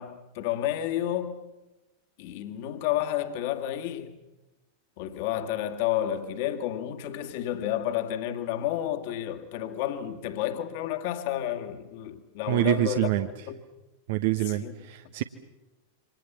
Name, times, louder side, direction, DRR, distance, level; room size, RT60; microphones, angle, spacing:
voice 1, 0.0-1.4 2.2-4.1 5.0-13.1 13.5-13.6 14.4-14.8, left 12 dB, 50° left, 2.1 m, -31 dB
voice 2, 12.5-13.3 14.1-15.2, right 15 dB, 50° right, 1.0 m, -26 dB
28.0 x 25.5 x 7.5 m
figure-of-eight pair, 90°, 0 cm